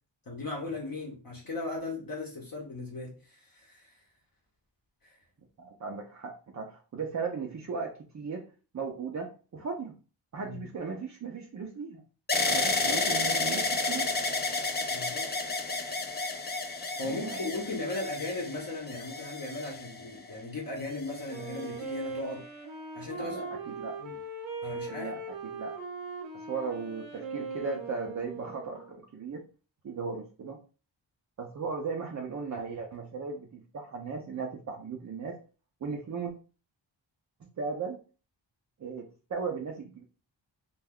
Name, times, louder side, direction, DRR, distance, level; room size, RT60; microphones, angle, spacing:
voice 1, 0.3-3.9 5.0-5.2 10.4-10.7 12.7-13.0 14.9-15.3 17.0-22.5 23.0-23.4 24.0-24.2 24.6-25.2, left 2 dB, 50° left, 0.8 m, -37 dB
voice 2, 5.6-8.5 8.7-9.9 10.3-12.0 12.5-14.1 17.0-17.7 23.2-24.0 24.7-25.7 26.3-29.4 29.8-30.6 31.4-35.3 35.8-36.3 37.6-38.0 38.8-40.0, right 5 dB, 40° right, 0.4 m, -37 dB
sound 1, 12.3-20.3 21.0-21.7, left 3 dB, 25° left, 0.4 m, -31 dB
Wind instrument woodwind instrument, 21.3-29.0, right 3 dB, 85° right, 0.8 m, -40 dB
2.3 x 2.2 x 3.4 m
wide cardioid pair, 100°, 46 cm